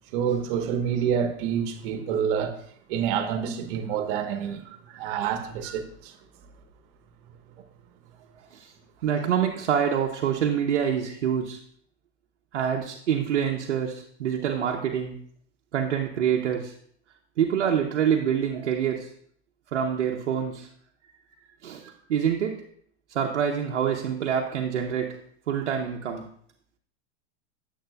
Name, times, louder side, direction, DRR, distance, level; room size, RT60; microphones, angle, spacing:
voice 1, 0.1-2.5 2.9-6.1, right 8 dB, 55° right, 1.2 m, -28 dB
voice 2, 9.0-11.6 12.5-15.2 15.7-16.7 17.4-19.1 19.7-20.7 21.6-22.6 23.1-25.2 25.5-26.3, right 8 dB, 85° right, 0.8 m, -26 dB
8.6 x 7.4 x 2.3 m
hypercardioid pair, 110°, 34 cm